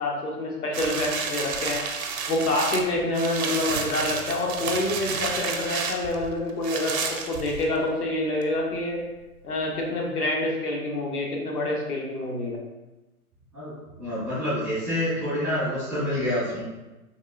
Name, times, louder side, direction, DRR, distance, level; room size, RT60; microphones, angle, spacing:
voice 1, 0.0-1.8 2.3-9.0 9.4-12.6, left 2 dB, 80° left, -1 dB, 0.9 m, -27 dB
sound 1, 0.7-7.9 8.4-8.5, right 5 dB, 65° right, 0.6 m, -31 dB
voice 2, 13.5-16.6, left 1 dB, ahead, -21 dB, 0.4 m, -27 dB
3.5 x 2.3 x 2.4 m, 1.1 s
hypercardioid pair, 135°, 45 cm